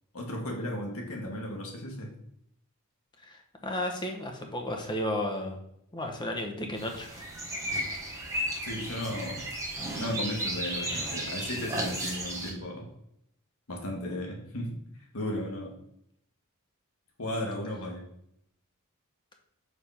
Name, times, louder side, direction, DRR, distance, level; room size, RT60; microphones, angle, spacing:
voice 1, 0.1-2.1 8.6-9.4 10.0-12.9 13.7-14.8 15.1-15.7 17.2-18.0, left 1 dB, 70° left, 0 dB, 1.5 m, -35 dB
voice 2, 3.2-5.6 5.9-7.1, left 1 dB, 20° left, 3 dB, 0.9 m, -33 dB
sound 1, 6.8-12.5, right 1 dB, 15° right, 1.2 m, -34 dB
4.9 x 3.5 x 5.6 m, 0.75 s
head